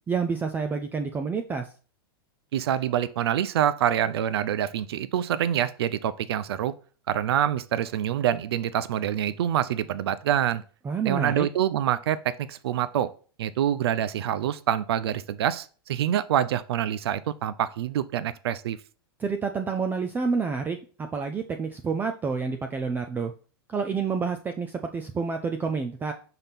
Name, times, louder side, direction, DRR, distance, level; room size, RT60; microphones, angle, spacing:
voice 1, 0.1-1.7 10.8-11.5 19.2-23.3 23.7-26.1, right 5 dB, 15° right, 5 dB, 0.5 m, -28 dB
voice 2, 2.5-6.7 7.1-10.6 11.0-13.1 13.4-18.8, right 10 dB, 80° right, 16 dB, 0.5 m, -26 dB
5.7 x 3.5 x 5.8 m, 0.39 s
hypercardioid pair, 135°, 13 cm